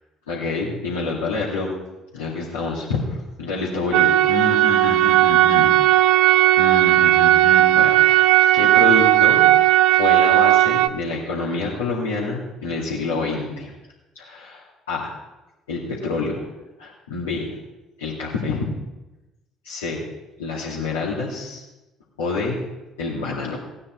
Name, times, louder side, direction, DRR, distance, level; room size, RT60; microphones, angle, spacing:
voice 1, 0.3-1.7 2.1-6.0 6.6-9.5 9.9-13.7 14.1-15.1 15.7-16.4 16.8-17.6 18.0-18.6 19.6-20.0 20.4-21.6 22.2-22.6 23.0-23.6, left 3 dB, 80° left, -8 dB, 2.6 m, -27 dB
sound 1, 3.9-10.9, right 14 dB, 65° right, 0.5 m, -15 dB
17.5 x 9.7 x 4.6 m, 1.0 s
figure-of-eight pair, 50°, 0 cm